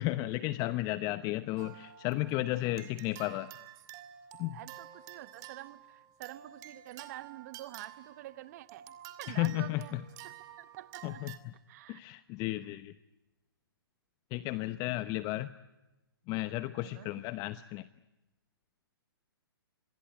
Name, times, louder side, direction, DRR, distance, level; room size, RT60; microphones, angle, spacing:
voice 1, 0.0-3.5 4.4-4.6 9.3-10.0 11.0-11.5 11.9-12.9 14.3-15.5 16.3-17.9, left 17 dB, 30° left, 14 dB, 0.9 m, -33 dB
sound 1, 1.6-11.4, right 12 dB, 30° right, 2.4 m, -50 dB
voice 2, 4.5-9.9 10.2-11.2 11.7-12.0 16.8-17.1, right 15 dB, 45° right, 16 dB, 1.3 m, -47 dB
27.0 x 21.5 x 10.0 m, 1.0 s
hypercardioid pair, 130°, 13 cm